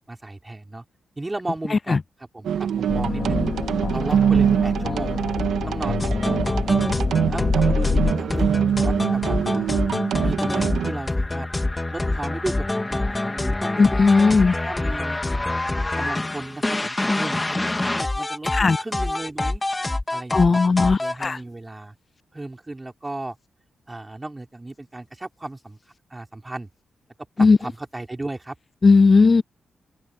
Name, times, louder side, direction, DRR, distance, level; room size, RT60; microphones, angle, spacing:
voice 1, 0.1-0.8 1.2-3.4 3.9-5.2 5.6-6.7 7.2-9.7 10.2-11.5 11.9-14.0 14.5-15.6 15.9-19.6 20.1-20.6 21.0-21.9 22.3-23.4 23.9-25.8 26.1-26.7 27.4-28.5, right 2 dB, 20° right, 4.8 m, -35 dB
sound 1, 2.4-10.9, right 8 dB, 85° right, 1.7 m, -23 dB
sound 2, 2.9-8.1, left 5 dB, 55° left, 2.4 m, -27 dB
sound 3, 6.0-21.3, left 2 dB, 20° left, 3.3 m, -26 dB
voice 2, 13.8-14.5 18.5-18.8 20.3-21.4 27.4-27.6 28.8-29.4, left 4 dB, 40° left, 0.3 m, -16 dB
open air
cardioid pair, 75°, 0 cm